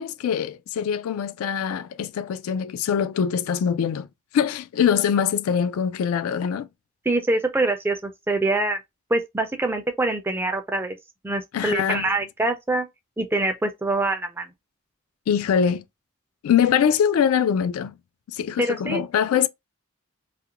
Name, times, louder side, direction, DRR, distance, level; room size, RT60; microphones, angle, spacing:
voice 1, 0.0-4.1 4.3-6.7 11.5-12.1 15.3-15.8 16.4-17.9 18.3-19.5, left 8 dB, 85° left, 0.3 m, -23 dB
voice 2, 7.1-8.8 9.1-11.0 11.2-12.9 13.2-14.5 18.6-19.0, right 2 dB, 10° right, 0.3 m, -24 dB
2.5 x 2.1 x 2.8 m
head